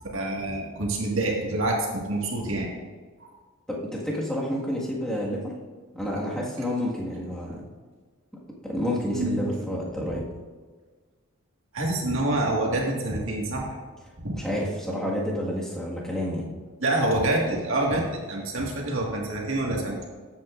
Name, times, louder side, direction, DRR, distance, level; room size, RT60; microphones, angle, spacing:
voice 1, 0.0-2.7 9.1-9.5 10.1-10.2 11.7-13.8 14.2-14.4 16.8-20.1, right 2 dB, 65° right, -1 dB, 1.8 m, -27 dB
voice 2, 3.7-5.5 5.9-7.6 8.6-10.2 14.4-16.4, equal, 5° left, -5 dB, 1.7 m, -29 dB
13.0 x 8.2 x 2.5 m, 1.4 s
head